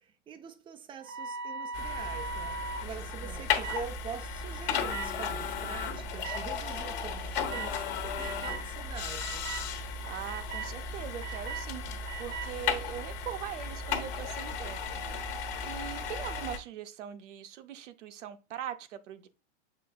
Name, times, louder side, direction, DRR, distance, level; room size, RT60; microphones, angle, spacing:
voice 1, 0.0-9.5, right 7 dB, 15° right, 0.3 m, -44 dB
sound 1, 1.0-2.8 3.6-3.8 4.9-5.1 6.2-6.4 7.5-7.7 8.2-8.6 9.2-9.6 10.2-10.7 11.2-11.6 12.1-12.5, right 5 dB, 35° right, 0.7 m, -38 dB
sound 2, 1.7-16.6, left 5 dB, 50° left, 1.2 m, -35 dB
voice 2, 10.0-11.8 12.2-15.2 15.6-19.3, right 10 dB, 85° right, 0.7 m, -41 dB
6.7 x 3.2 x 2.3 m
hypercardioid pair, 115°, 36 cm